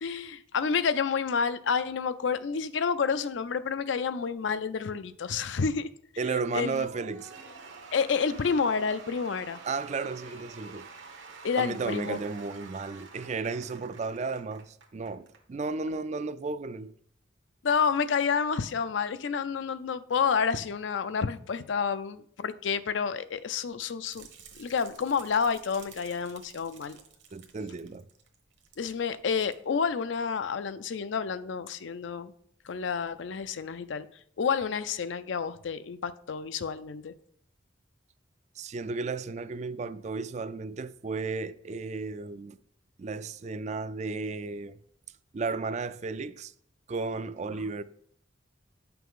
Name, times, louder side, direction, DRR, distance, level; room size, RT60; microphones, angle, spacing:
voice 1, 0.0-5.9 6.5-6.8 7.9-9.6 11.4-12.2 17.6-24.3 24.6-27.0 28.8-32.3 32.6-34.1 34.4-37.1 47.5-47.7, left 6 dB, 70° left, 0.5 m, -29 dB
voice 2, 6.2-7.3 9.6-10.9 11.6-16.9 27.3-28.1 38.6-42.6 43.0-44.8 45.3-46.5 46.9-47.8, right 4 dB, 35° right, 0.3 m, -34 dB
Cheering / Applause / Crowd, 6.8-15.4, right 4 dB, 80° right, 1.3 m, -48 dB
sound 1, 24.1-28.9 29.2-29.5 30.0-30.1, right 7 dB, 65° right, 1.1 m, -53 dB
9.3 x 5.8 x 3.7 m
head